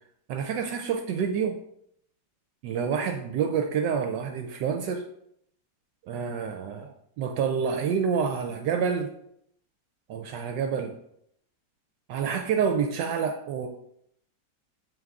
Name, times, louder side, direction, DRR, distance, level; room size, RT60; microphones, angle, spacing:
voice 1, 0.3-1.6 2.6-5.0 6.1-9.1 10.1-10.9 12.1-13.7, right 6 dB, 80° right, 5 dB, 1.2 m, -28 dB
7.6 x 3.6 x 3.5 m, 0.73 s
omnidirectional pair, 2.0 m